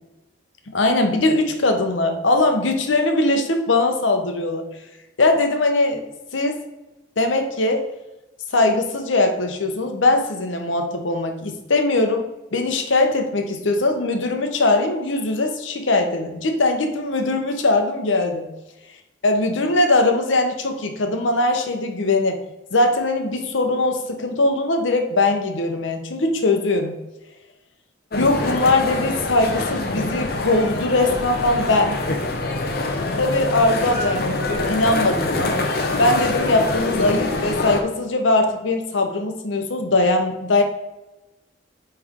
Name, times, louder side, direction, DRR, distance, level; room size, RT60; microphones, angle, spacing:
voice 1, 0.7-4.6 5.2-6.0 6.3-6.6 7.2-7.9 8.5-12.2 12.5-18.5 19.2-22.4 22.7-26.9 28.2-32.0 33.2-35.6 36.0-40.6, left 2 dB, 80° left, 5 dB, 0.9 m, -20 dB
sound 1, 28.1-37.8, left 2 dB, 50° left, 0.8 m, -25 dB
8.5 x 3.4 x 3.6 m, 1.0 s
head